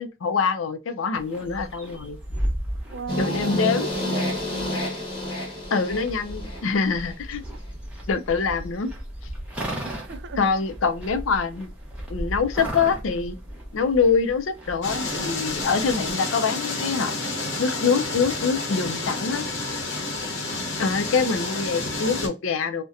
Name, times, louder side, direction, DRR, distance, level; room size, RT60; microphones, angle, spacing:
voice 1, 0.0-2.2 3.2-3.9 5.7-7.4 8.1-8.9 10.4-11.7 12.1-13.3 13.7-17.1 17.6-19.5 20.8-22.8, left 5 dB, 80° left, 0.5 m, -24 dB
sound 1, 1.1-16.1, equal, 5° right, 0.6 m, -36 dB
voice 2, 2.9-4.8 9.8-10.5 20.5-20.9, right 5 dB, 60° right, 0.3 m, -37 dB
sound 2, 3.1-7.2, left 1 dB, 25° left, 1.0 m, -30 dB
sound 3, 14.8-22.3, left 2 dB, 65° left, 0.9 m, -29 dB
2.7 x 2.1 x 2.3 m
head